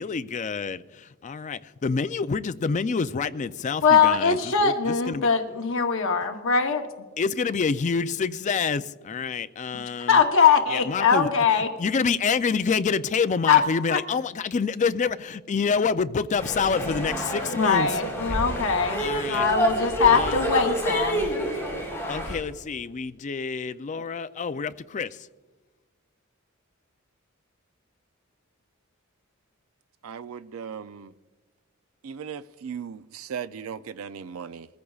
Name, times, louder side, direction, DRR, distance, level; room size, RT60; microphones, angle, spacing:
voice 1, 0.0-5.3 7.2-10.2 10.7-11.3 11.8-17.9 18.3-18.4 19.0-19.5 20.1-20.5 22.1-25.3, left 5 dB, 35° left, 0.4 m, -27 dB
voice 2, 3.8-6.9 10.1-11.7 13.5-13.6 13.9-14.0 17.5-21.3 23.9-24.0, left 6 dB, 65° left, 0.9 m, -21 dB
sound 1, 16.4-22.4, right 1 dB, 15° left, 3.9 m, -28 dB
voice 3, 30.0-31.1 32.0-34.7, right 7 dB, 80° right, 0.4 m, -37 dB
22.0 x 14.5 x 2.4 m
head